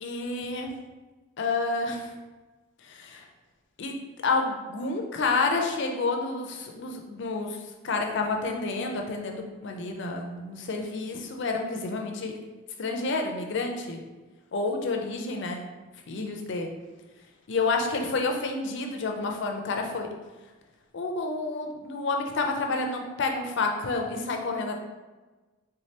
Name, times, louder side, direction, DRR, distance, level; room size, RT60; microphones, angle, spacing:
voice 1, 0.0-0.7 1.4-2.1 2.8-3.2 3.8-3.9 4.2-7.6 7.8-12.3 12.8-14.0 14.5-15.6 16.1-16.7 17.5-20.1 20.9-24.8, left 3 dB, 55° left, 3 dB, 0.4 m, -29 dB
3.6 x 3.2 x 2.8 m, 1.2 s
head